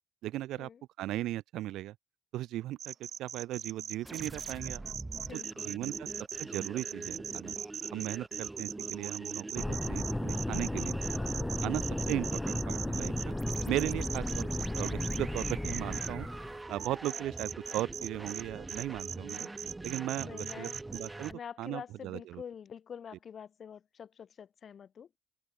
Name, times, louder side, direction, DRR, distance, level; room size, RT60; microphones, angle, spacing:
voice 1, 0.2-0.7 1.0-2.0 2.3-4.8 5.3-6.1 6.4-7.6 7.9-11.0 11.6-13.4 13.7-19.5 19.8-22.4, right 15 dB, 90° right, 0.3 m, -37 dB
sound 1, 2.8-16.1 16.8-18.4 18.7-21.3, right 8 dB, 60° right, 0.7 m, -39 dB
sound 2, 4.0-21.3, right 2 dB, 15° right, 0.9 m, -44 dB
voice 2, 5.1-6.0 11.2-11.4 17.4-17.5 20.2-20.8 21.3-25.2, left 7 dB, 55° left, 4.6 m, -47 dB
sound 3, 9.6-16.6, left 1 dB, 10° left, 0.7 m, -34 dB
cardioid pair, 90°, 0 cm